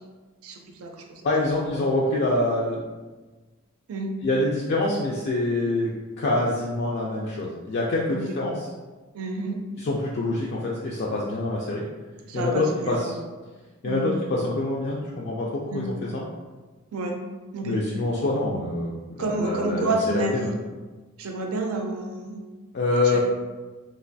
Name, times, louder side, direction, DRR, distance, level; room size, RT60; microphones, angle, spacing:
voice 1, 0.4-0.9 1.2-1.3 3.9-4.1 8.1-8.3 9.1-9.6 12.3-13.2 13.8-14.1 15.7-15.8 16.9-17.2 17.5-17.8 19.2-20.5 21.2-22.4 23.0-23.2, right 2 dB, 85° right, 3 dB, 0.5 m, -29 dB
voice 2, 1.2-2.9 4.2-5.9 6.2-8.7 9.8-11.8 12.3-13.2 13.8-16.2 17.6-20.5 22.7-23.2, left 2 dB, 50° left, -4 dB, 0.3 m, -26 dB
3.0 x 2.4 x 2.6 m, 1.3 s
head